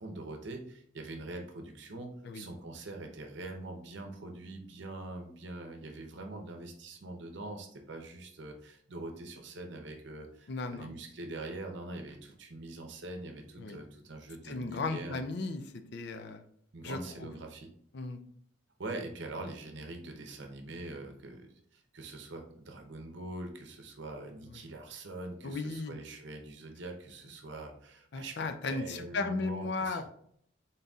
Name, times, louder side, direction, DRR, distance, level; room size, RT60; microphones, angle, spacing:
voice 1, 0.0-15.2 16.7-17.7 18.8-30.1, right 2 dB, 60° right, 4 dB, 0.8 m, -43 dB
voice 2, 10.5-10.9 13.6-13.8 14.4-15.6 15.9-16.4 16.8-17.3 17.9-18.2 24.5-24.6 25.4-25.9 28.1-30.1, left 3 dB, 55° left, 8 dB, 0.4 m, -36 dB
4.0 x 3.9 x 2.3 m, 0.66 s
head